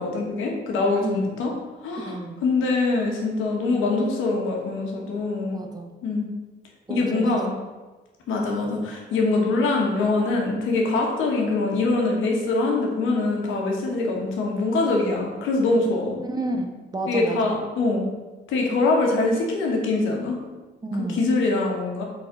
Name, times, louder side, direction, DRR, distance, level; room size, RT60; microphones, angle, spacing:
voice 1, 0.0-1.5 1.8-2.2 2.4-5.6 6.0-6.3 6.9-7.5 8.3-16.2 17.1-18.0 18.5-20.4 21.2-22.0, left 3 dB, 85° left, 0 dB, 1.4 m, -23 dB
voice 2, 1.0-1.3 2.0-2.4 5.5-5.9 6.9-7.3 16.2-17.5 20.8-21.2, right 2 dB, 20° right, 4 dB, 0.7 m, -31 dB
4.6 x 4.0 x 5.1 m, 1.2 s
cardioid pair, 90°, 20 cm